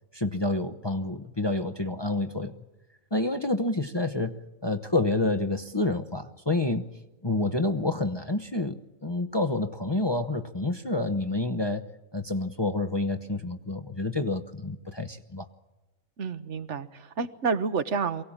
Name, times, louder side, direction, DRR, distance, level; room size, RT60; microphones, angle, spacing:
voice 1, 0.1-2.5 3.1-4.4 4.6-6.9 7.2-11.9 12.1-15.5, left 2 dB, 25° left, 7 dB, 0.8 m, -28 dB
voice 2, 16.2-18.2, right 5 dB, 65° right, 12 dB, 1.2 m, -29 dB
23.5 x 17.5 x 8.7 m, 1.1 s
omnidirectional pair, 1.4 m